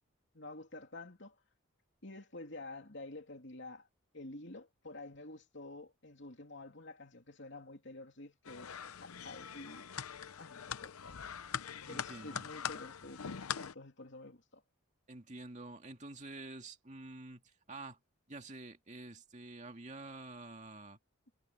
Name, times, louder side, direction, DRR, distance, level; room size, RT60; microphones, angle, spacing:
voice 1, 0.3-1.4 2.0-3.9 4.1-8.7 9.0-9.9 10.4-11.2 11.9-13.2 13.6-14.6, left 2 dB, 55° left, 3.1 m, -49 dB
sound 1, 8.4-13.7, left 8 dB, 90° left, 0.7 m, -42 dB
voice 2, 11.9-12.5 15.1-18.0 18.3-21.0, right 2 dB, 35° right, 2.3 m, -48 dB
head